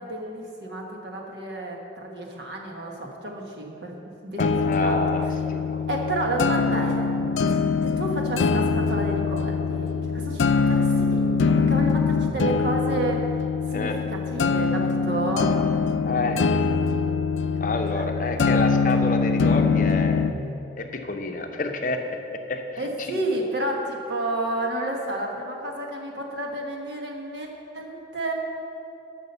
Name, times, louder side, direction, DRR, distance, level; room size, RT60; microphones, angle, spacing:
voice 1, 0.0-3.9 4.2-5.0 5.9-7.1 7.4-7.6 7.8-13.3 13.7-15.5 16.0-16.6 17.9-18.0 22.8-27.5 27.7-28.3, right 1 dB, 60° right, 0 dB, 1.5 m, -31 dB
sound 1, 4.4-20.4, left 5 dB, 85° left, 0.4 m, -23 dB
voice 2, 4.4-5.9 13.7-14.0 16.0-16.6 17.6-20.2 20.8-22.0 22.3-22.8 23.1-23.2, left 2 dB, 45° left, 5 dB, 0.7 m, -29 dB
11.0 x 6.2 x 6.9 m, 2.8 s
head